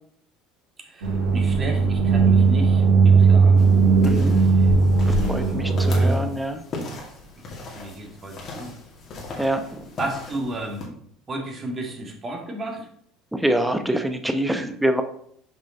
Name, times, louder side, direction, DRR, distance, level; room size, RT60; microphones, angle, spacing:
voice 1, 0.8-3.7 4.5-4.7 5.1-5.7 6.0-6.3 7.7-8.7 9.3-9.5 10.0-10.9 11.3-12.9, right 1 dB, 30° right, 2 dB, 1.9 m, -33 dB
sound 1, 1.0-6.1, right 4 dB, 75° right, 2.7 m, -17 dB
sound 2, 3.6-10.9, left 2 dB, 45° left, 2.2 m, -38 dB
voice 2, 4.0-4.4 5.3-6.6 9.4-9.9 13.3-15.0, right 1 dB, 5° right, 8 dB, 0.8 m, -25 dB
5.7 x 5.2 x 4.3 m, 0.66 s
hypercardioid pair, 80°, 0 cm